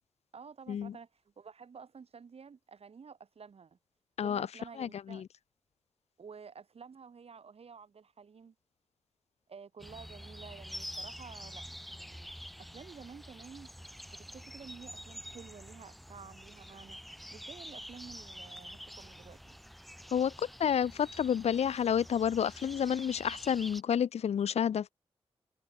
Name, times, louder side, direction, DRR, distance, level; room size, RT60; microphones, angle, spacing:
voice 1, 0.3-3.8 4.2-5.2 6.2-8.5 9.5-11.7 12.0-12.3 12.6-13.7 14.1-17.0 17.3-19.6, right 6 dB, 70° right, 5.3 m, -51 dB
voice 2, 4.8-5.3 20.1-24.9, left 8 dB, 85° left, 0.9 m, -30 dB
sound 1, 9.8-23.8, equal, ahead, 2.9 m, -47 dB
cardioid pair, 55°, 11 cm